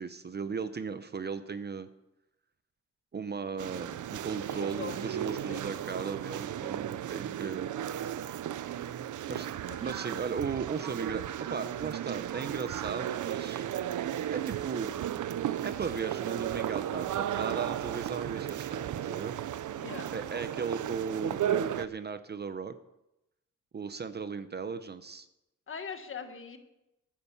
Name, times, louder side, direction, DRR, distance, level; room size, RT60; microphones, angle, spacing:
voice 1, 0.0-1.9 3.1-7.7 9.3-9.5 9.8-11.2 11.5-13.6 14.3-15.0 15.6-19.3 20.1-22.8 23.7-25.3, right 5 dB, 35° right, 11 dB, 0.6 m, -36 dB
sound 1, 3.6-21.8, right 11 dB, 75° right, 0.6 m, -35 dB
voice 2, 4.5-5.0 5.5-5.7 9.3-9.8 19.8-20.1 25.7-26.6, left 6 dB, 40° left, 7 dB, 1.4 m, -42 dB
12.5 x 9.9 x 7.0 m, 0.92 s
wide cardioid pair, 160°, 31 cm